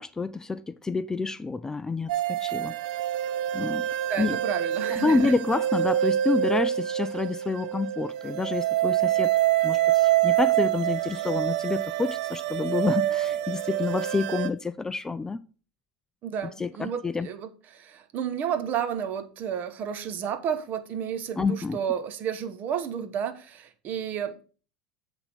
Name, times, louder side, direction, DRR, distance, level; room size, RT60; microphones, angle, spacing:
voice 1, 0.0-2.7 3.5-3.9 4.2-4.4 4.8-9.3 9.6-15.4 16.6-17.3 21.4-21.8, left 4 dB, 15° left, 0.3 m, -28 dB
sound 1, 2.1-14.5, right 12 dB, 75° right, 0.5 m, -26 dB
voice 2, 4.1-5.3 16.2-24.4, right 8 dB, 45° right, 1.0 m, -31 dB
8.1 x 3.5 x 5.2 m
hypercardioid pair, 95°, 4 cm